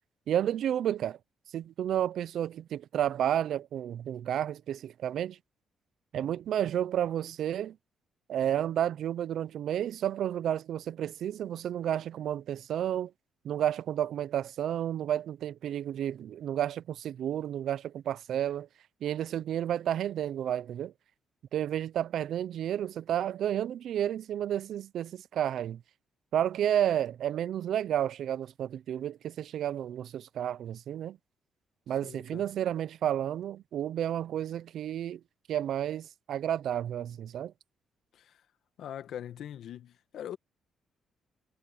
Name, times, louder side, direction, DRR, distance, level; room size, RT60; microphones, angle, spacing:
voice 1, 0.3-1.2 1.5-5.4 6.1-7.8 8.3-13.1 13.4-18.7 19.0-20.9 21.5-25.8 26.3-31.2 31.9-35.2 35.5-37.5, right 10 dB, 70° right, 0.6 m, -31 dB
voice 2, 31.9-32.5 38.1-38.4 38.8-40.4, left 10 dB, 70° left, 1.6 m, -42 dB
cardioid pair, 90°, 0 cm